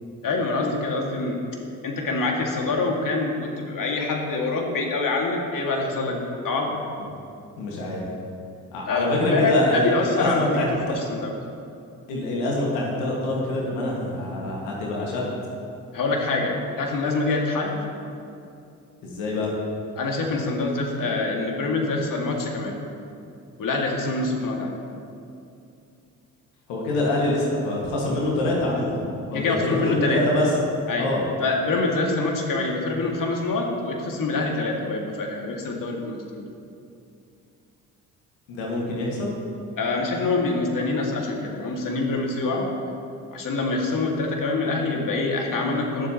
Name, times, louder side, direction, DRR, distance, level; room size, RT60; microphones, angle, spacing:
voice 1, 0.2-1.4 1.8-6.8 8.9-11.3 15.9-17.8 20.0-22.7 23.6-24.7 29.3-30.2 30.9-31.1 31.4-36.4 39.8-42.7 43.3-46.1, left 3 dB, 50° left, 0 dB, 2.1 m, -25 dB
voice 2, 7.6-8.1 8.7-11.0 12.1-15.3 19.0-19.5 26.7-29.0 29.3-30.5 31.0-31.2 38.5-39.4, left 1 dB, 80° left, -3 dB, 1.9 m, -25 dB
21.0 x 7.5 x 3.0 m, 2.6 s
hypercardioid pair, 50°, 41 cm